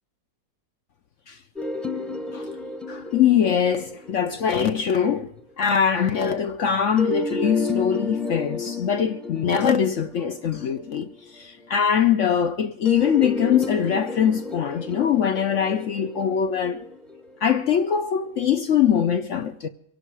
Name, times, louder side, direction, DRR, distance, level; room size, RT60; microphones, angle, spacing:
sound 1, 1.6-5.4 7.0-11.4 12.9-18.0, left 3 dB, ahead, 0.7 m, -33 dB
voice 1, 2.9-5.3 5.6-16.8 17.4-19.7, left 8 dB, 60° left, 0.8 m, -22 dB
24.0 x 11.5 x 4.7 m
omnidirectional pair, 2.0 m